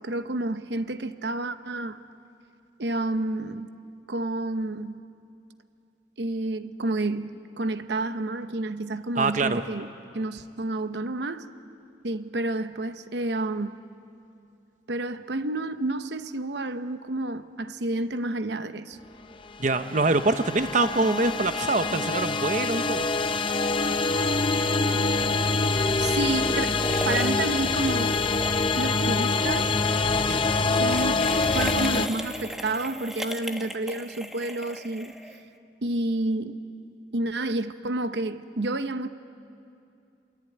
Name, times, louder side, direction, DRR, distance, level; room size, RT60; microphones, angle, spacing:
voice 1, 0.0-2.0 2.8-3.7 4.1-5.0 6.2-9.9 10.1-11.5 12.0-13.7 14.9-19.0 26.0-28.1 28.7-29.8 30.7-35.1 35.8-36.6 37.1-39.1, right 2 dB, 70° right, 0.9 m, -30 dB
voice 2, 9.2-9.6 19.6-23.0 30.3-30.4, right 3 dB, 45° right, 0.8 m, -24 dB
sound 1, 19.8-32.1, left 3 dB, 30° left, 0.9 m, -25 dB
sound 2, 26.8-29.0 29.3-29.5 30.6-35.6, equal, ahead, 1.0 m, -37 dB
27.5 x 22.5 x 9.2 m
head